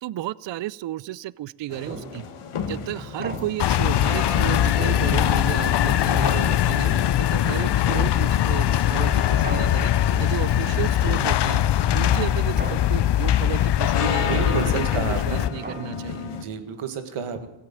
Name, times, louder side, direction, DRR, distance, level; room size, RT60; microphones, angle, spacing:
voice 1, 0.0-2.2 2.7-6.9 7.2-9.9 10.2-11.6 11.9-16.2, right 14 dB, 60° right, 22 dB, 0.5 m, -33 dB
sound 1, 1.7-16.4, left 7 dB, 80° left, 1.7 m, -33 dB
sound 2, 1.9-2.4 3.2-3.9 4.8-5.5 6.2-7.0 7.9-8.6 9.4-10.2 11.1-11.7 12.6-13.3 14.2-16.2, right 3 dB, 20° right, 1.1 m, -38 dB
sound 3, 3.6-15.5, left 11 dB, 55° left, 0.6 m, -21 dB
voice 2, 6.6-7.0 14.2-15.5 16.2-17.5, right 6 dB, 85° right, 8 dB, 1.9 m, -31 dB
16.5 x 8.4 x 8.8 m, 1.0 s
cardioid pair, 65°, 50 cm